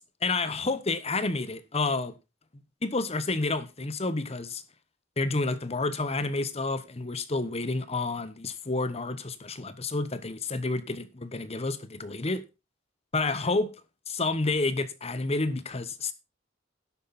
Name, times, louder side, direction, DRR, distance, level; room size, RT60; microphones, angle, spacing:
voice 1, 0.2-2.1 2.8-4.6 5.2-12.4 13.1-13.7 14.1-16.1, left 3 dB, 35° left, 1.1 m, -29 dB
11.5 x 8.5 x 4.1 m
head